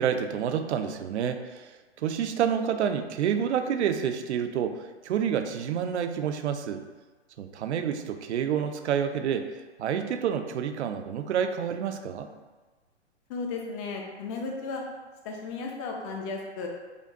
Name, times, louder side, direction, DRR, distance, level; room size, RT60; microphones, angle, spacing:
voice 1, 0.0-1.7 2.0-6.8 7.4-9.5 9.8-12.3, right 8 dB, 70° right, 7 dB, 0.5 m, -28 dB
voice 2, 13.3-14.8 15.2-16.7, left 4 dB, 30° left, 1 dB, 0.6 m, -34 dB
5.0 x 2.2 x 2.6 m, 1.3 s
hypercardioid pair, 125°, 35 cm